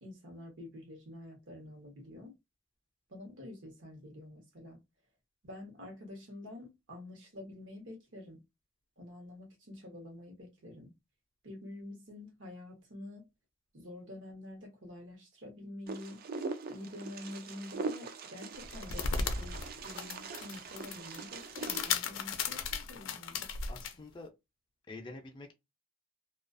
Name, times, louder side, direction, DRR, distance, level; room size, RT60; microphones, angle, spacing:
voice 1, 0.0-2.3 3.1-4.8 5.4-8.4 9.0-10.9 11.4-13.3 13.7-16.2 16.7-19.6 19.8-23.6, left 1 dB, 75° right, 0.9 m, -48 dB
Wind, 15.9-21.9, right 4 dB, 50° right, 0.4 m, -42 dB
sound 1, 18.6-23.9, left 5 dB, 85° left, 0.4 m, -36 dB
voice 2, 23.7-24.3 24.9-25.5, left 2 dB, 25° left, 0.4 m, -47 dB
2.3 x 2.3 x 2.5 m
head